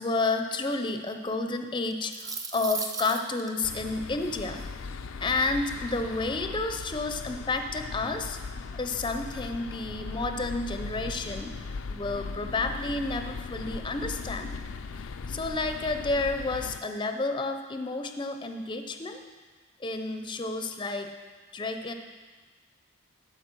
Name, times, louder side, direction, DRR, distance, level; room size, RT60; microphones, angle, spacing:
voice 1, 0.0-4.7 5.2-8.4 8.7-11.6 11.9-14.6 15.3-19.2 19.8-21.1 21.5-21.9, left 3 dB, 25° left, 6 dB, 0.5 m, -30 dB
sound 1, 1.9-3.5, right 4 dB, 20° right, 0.6 m, -35 dB
sound 2, 3.6-16.8, left 4 dB, 80° left, 0.4 m, -38 dB
12.0 x 4.9 x 6.0 m, 1.4 s
head